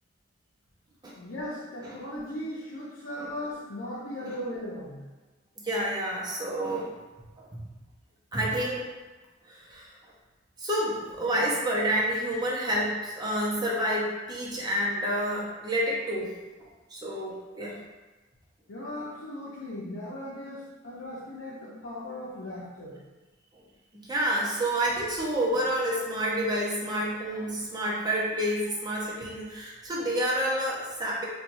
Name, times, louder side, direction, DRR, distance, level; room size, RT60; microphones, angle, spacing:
voice 1, 1.1-5.0 18.7-23.0, left 1 dB, 80° left, -9 dB, 0.7 m, -38 dB
voice 2, 5.6-6.9 8.3-8.8 9.5-9.9 10.6-16.3 16.9-17.8 23.9-31.2, right 1 dB, 20° right, -4 dB, 0.6 m, -29 dB
4.2 x 2.2 x 2.6 m, 1.2 s
head